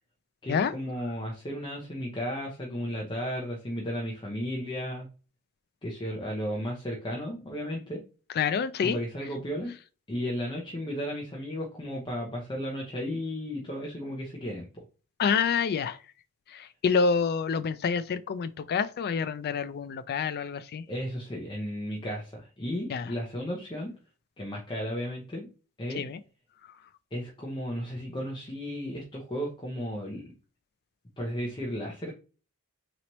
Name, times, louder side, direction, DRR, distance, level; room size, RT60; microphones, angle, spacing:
voice 1, 0.4-5.1 5.8-8.0 8.8-9.7 10.1-14.7 20.9-23.9 24.4-25.5 25.8-26.0 27.1-30.2 31.2-32.1, equal, 20° left, 0.8 m, -34 dB
voice 2, 8.4-9.0 15.2-16.0 16.5-20.8 22.9-23.1 26.0-26.2, left 6 dB, 45° left, 0.3 m, -27 dB
4.0 x 3.0 x 3.0 m
head